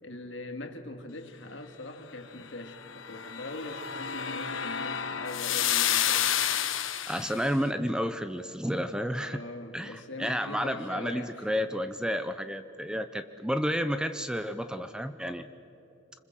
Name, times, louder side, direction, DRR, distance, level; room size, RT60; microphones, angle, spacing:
voice 1, 0.0-6.3 9.3-11.5, left 2 dB, 65° left, 5 dB, 2.3 m, -41 dB
sound 1, 2.8-7.4, left 10 dB, 90° left, 1.2 m, -30 dB
voice 2, 7.1-9.4 9.7-15.5, equal, 5° right, 10 dB, 0.7 m, -31 dB
27.5 x 25.5 x 7.6 m, 3.0 s
head